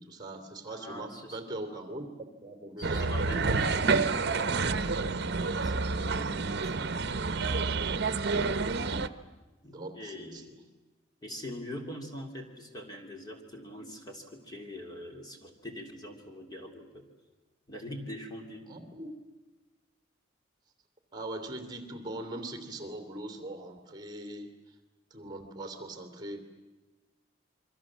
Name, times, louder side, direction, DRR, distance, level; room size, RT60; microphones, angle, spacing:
voice 1, 0.0-2.1 2.4-3.3 5.7-6.1 8.6-8.9 9.6-10.6 18.7-19.1 21.1-24.7 25.1-26.4, right 1 dB, 25° right, 7 dB, 2.8 m, -41 dB
voice 2, 0.7-1.4 2.8-4.5 4.9-5.1 5.6-6.9 9.6-10.5 11.2-17.0 17.7-18.7 25.2-25.4, left 1 dB, 20° left, 2 dB, 2.9 m, -43 dB
sound 1, 2.8-9.1, right 4 dB, 60° right, 0.9 m, -29 dB
28.0 x 24.0 x 7.4 m, 1.1 s
head